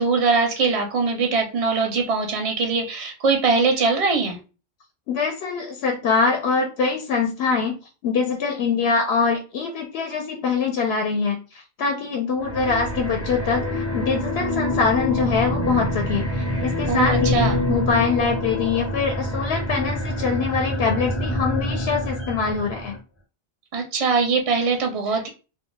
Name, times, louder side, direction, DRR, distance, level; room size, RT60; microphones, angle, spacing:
voice 1, 0.0-4.4 16.9-17.6 22.2-22.3 23.7-25.3, right 4 dB, 45° right, 3 dB, 0.5 m, -22 dB
voice 2, 5.1-7.8 8.0-17.4 17.7-22.9, left 5 dB, 75° left, 2 dB, 0.8 m, -24 dB
sound 1, 12.4-23.0, left 1 dB, 20° left, 0.5 m, -26 dB
2.3 x 2.1 x 3.8 m, 0.33 s
omnidirectional pair, 1.1 m